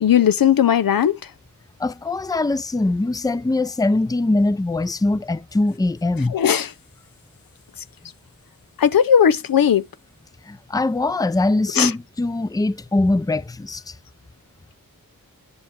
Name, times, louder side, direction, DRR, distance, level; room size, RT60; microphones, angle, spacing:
voice 1, 0.0-1.2 6.3-6.7 8.8-9.8 11.8-11.9, left 8 dB, 75° left, 0.6 m, -17 dB
voice 2, 1.8-6.3 10.4-14.0, left 2 dB, 10° left, 0.5 m, -22 dB
9.7 x 5.3 x 3.0 m
cardioid pair, 45°, 35 cm